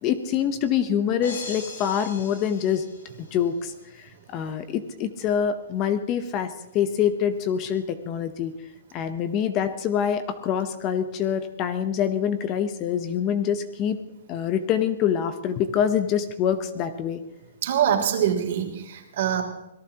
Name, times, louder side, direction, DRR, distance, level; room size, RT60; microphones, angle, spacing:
voice 1, 0.0-2.8 3.3-8.5 8.9-14.0 14.3-17.2, left 8 dB, 20° left, 10 dB, 0.8 m, -25 dB
sound 1, 1.2-3.5, left 3 dB, 80° left, 6.9 m, -40 dB
voice 2, 17.6-19.4, right 9 dB, 50° right, 2 dB, 3.1 m, -24 dB
26.0 x 18.0 x 2.9 m, 0.95 s
hypercardioid pair, 170°, 0 cm